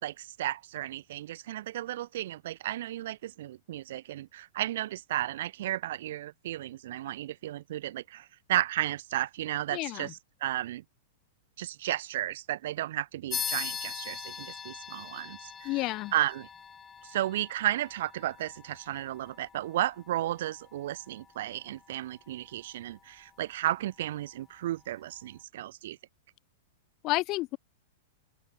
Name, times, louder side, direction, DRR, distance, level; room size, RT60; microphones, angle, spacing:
voice 1, 0.0-10.8 11.6-15.7 16.1-16.5 17.0-26.0, right 14 dB, 55° right, 4.9 m, -33 dB
voice 2, 9.7-10.1 15.6-16.1 27.0-27.6, left 20 dB, 25° left, 6.9 m, -30 dB
sound 1, 13.3-23.3, left 6 dB, 10° left, 4.5 m, -42 dB
open air
supercardioid pair, 175°, 0 cm